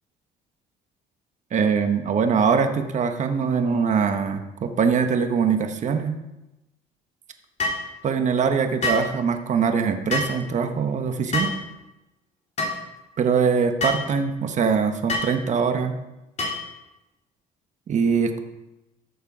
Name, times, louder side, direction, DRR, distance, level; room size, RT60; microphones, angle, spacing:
voice 1, 1.5-6.2 8.0-11.5 13.2-16.0 17.9-18.4, right 6 dB, 45° right, 7 dB, 1.2 m, -22 dB
sound 1, 7.6-7.8 8.8-9.1 10.1-10.4 11.3-11.6 12.6-12.8 13.8-14.0 15.1-15.3 16.4-16.7, left 2 dB, 40° left, 3.7 m, -25 dB
14.0 x 6.7 x 5.0 m, 0.96 s
cardioid pair, 110°, 17 cm